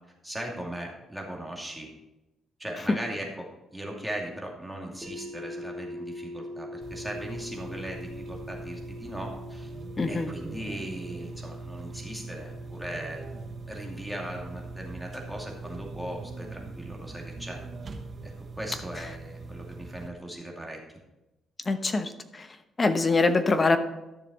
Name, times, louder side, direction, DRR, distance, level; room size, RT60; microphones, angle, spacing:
voice 1, 0.2-1.9 2.6-9.7 10.1-13.2 13.6-17.6 18.2-20.8, right 1 dB, 5° right, -1 dB, 2.4 m, -38 dB
sound 1, 5.0-16.9, left 1 dB, 25° right, 3.2 m, -44 dB
sound 2, 6.8-20.1, right 3 dB, 45° right, 1.1 m, -41 dB
voice 2, 10.0-10.3 21.7-22.1 22.8-23.8, left 3 dB, 30° left, 10 dB, 0.9 m, -23 dB
12.5 x 6.9 x 4.2 m, 0.98 s
cardioid pair, 90°, 0 cm